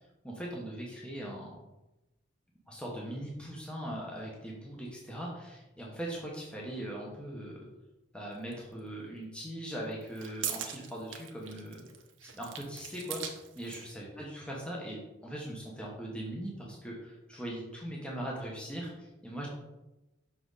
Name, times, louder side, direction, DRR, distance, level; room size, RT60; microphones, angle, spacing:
voice 1, 0.2-1.6 2.7-7.6 8.1-11.8 12.2-19.5, right 1 dB, 5° left, -3 dB, 1.1 m, -40 dB
sound 1, 8.5-8.6 9.9-13.9, right 9 dB, 80° right, 1.0 m, -41 dB
6.1 x 5.9 x 4.0 m, 1.0 s
head